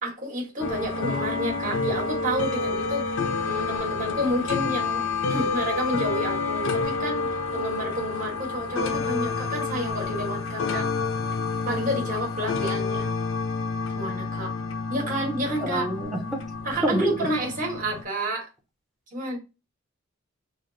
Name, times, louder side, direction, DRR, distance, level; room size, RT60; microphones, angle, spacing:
voice 1, 0.0-3.2 3.4-5.0 5.3-10.9 11.6-13.1 13.9-14.5 14.9-15.8 16.6-18.5 19.1-19.4, right 1 dB, 40° right, -2 dB, 1.3 m, -30 dB
sound 1, 0.6-18.0, left 4 dB, 75° left, 0.6 m, -29 dB
voice 2, 15.6-16.2 16.8-17.3, equal, ahead, 1 dB, 0.7 m, -26 dB
3.1 x 2.4 x 3.8 m, 0.29 s
head